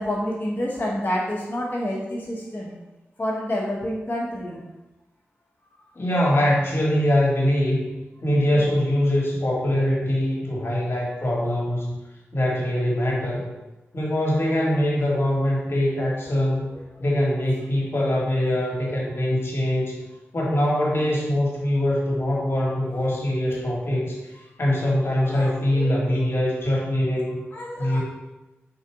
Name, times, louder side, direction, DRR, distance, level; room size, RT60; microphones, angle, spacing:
voice 1, 0.0-2.7 3.2-4.7 5.7-5.8 8.2-8.5 16.7-17.0 25.2-26.2 27.5-28.0, left 1 dB, 40° left, -7 dB, 0.9 m, -29 dB
voice 2, 5.9-7.8 8.2-12.0 12.3-13.5 13.9-16.7 17.0-20.0 20.3-24.2 24.6-27.4 27.8-28.0, left 1 dB, 60° left, -4 dB, 1.3 m, -23 dB
3.8 x 2.4 x 4.5 m, 1.0 s
cardioid pair, 45°, 5 cm